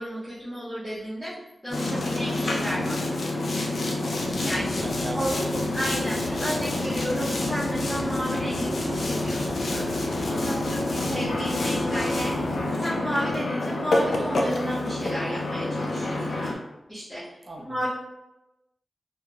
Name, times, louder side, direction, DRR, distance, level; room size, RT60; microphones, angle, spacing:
voice 1, 0.0-1.3 1.6-3.1 4.4-4.8 5.1-5.4 5.7-9.9 10.3-12.3 12.8-16.5 16.9-17.3 17.6-17.9, equal, ahead, -11 dB, 0.6 m, -32 dB
Boat Water vehicle, 1.7-16.5, left 2 dB, 65° left, 0.4 m, -27 dB
voice 2, 4.0-4.4 4.8-6.7 10.3-10.5 17.5-17.6, right 1 dB, 35° right, 0 dB, 0.4 m, -39 dB
sound 1, 4.1-12.7, equal, 45° left, 0.8 m, -40 dB
2.8 x 2.1 x 2.4 m, 0.95 s
wide cardioid pair, 110°, 0 cm